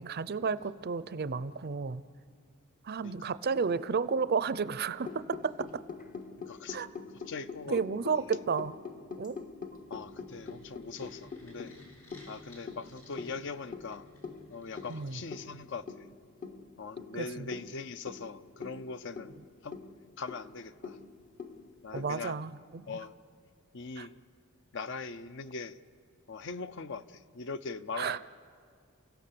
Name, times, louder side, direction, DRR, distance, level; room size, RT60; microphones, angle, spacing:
voice 1, 0.0-2.0 2.8-5.7 6.7-6.9 7.7-8.7 9.2-9.4 14.9-15.2 17.1-17.5 21.9-22.9 24.0-24.1 28.0-28.2, right 5 dB, 45° right, 15 dB, 0.5 m, -32 dB
sound 1, 5.0-22.1, left 5 dB, 40° left, 0.9 m, -45 dB
voice 2, 6.5-6.9 7.3-8.1 9.9-11.8 12.3-14.1 14.5-16.1 16.8-19.3 19.6-19.8 20.2-21.0 21.8-22.4 22.9-23.1 23.7-24.1 24.7-25.8 26.3-28.2, left 4 dB, 60° left, 13 dB, 0.6 m, -41 dB
sound 2, 9.6-16.0, left 1 dB, 85° left, 6.9 m, -56 dB
29.0 x 16.0 x 6.9 m, 2.1 s
head